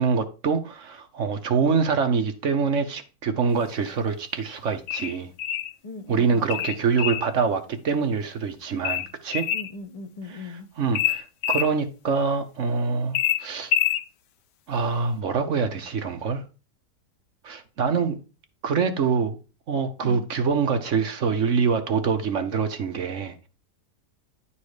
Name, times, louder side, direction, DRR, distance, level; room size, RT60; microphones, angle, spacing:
voice 1, 0.0-5.3 6.1-9.4 10.5-13.7 14.7-16.4 17.4-18.2 18.6-19.4 19.7-23.5, right 5 dB, 55° right, 1.0 m, -25 dB
sound 1, 4.9-5.7 6.5-7.3 8.8-9.7 10.9-11.7 13.1-14.0, left 11 dB, 90° left, 1.3 m, -25 dB
voice 2, 5.8-6.7 9.5-10.7 20.0-20.3, left 3 dB, 45° left, 0.4 m, -39 dB
10.5 x 4.2 x 4.9 m
omnidirectional pair, 1.8 m